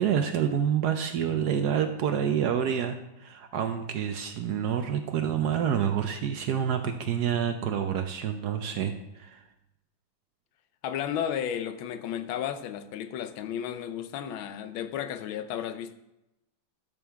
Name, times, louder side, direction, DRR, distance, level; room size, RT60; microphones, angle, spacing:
voice 1, 0.0-9.4, right 8 dB, 70° right, 1.0 m, -28 dB
voice 2, 10.8-15.9, left 9 dB, 85° left, 1.5 m, -33 dB
12.0 x 6.2 x 3.5 m
omnidirectional pair, 2.2 m